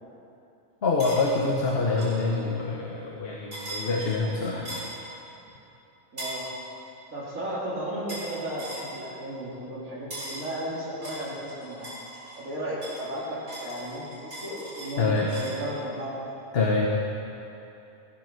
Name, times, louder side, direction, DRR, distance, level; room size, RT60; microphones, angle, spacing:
voice 1, 0.8-4.8 15.0-15.3 16.5-16.9, left 3 dB, 50° left, -1 dB, 1.3 m, -26 dB
sound 1, 1.0-1.2 2.0-2.2 3.5-3.8 4.7-5.0 6.2-6.4 8.1-8.3 8.6-8.9 10.1-10.4 11.0-12.4 12.8-15.6, right 1 dB, 60° right, 4.7 m, -39 dB
voice 2, 6.1-6.5 7.1-11.9 12.4-16.2, right 1 dB, 80° right, -7 dB, 3.0 m, -34 dB
16.0 x 9.7 x 6.6 m, 2.8 s
omnidirectional pair, 1.4 m